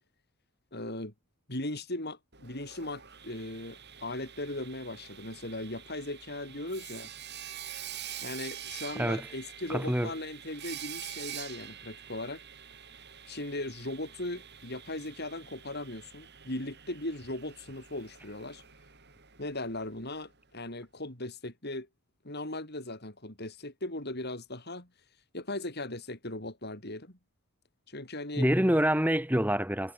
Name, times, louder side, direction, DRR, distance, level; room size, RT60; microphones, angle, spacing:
voice 1, 0.7-1.1 1.5-7.1 8.2-12.4 13.3-18.6 19.4-21.9 22.2-24.9 25.3-27.2 27.9-28.5, left 1 dB, 50° left, 6.1 m, -38 dB
Sawing, 2.3-20.1, right 10 dB, 50° right, 7.5 m, -46 dB
voice 2, 9.0-9.3 9.7-10.1 28.4-29.9, equal, 10° right, 7.0 m, -26 dB
head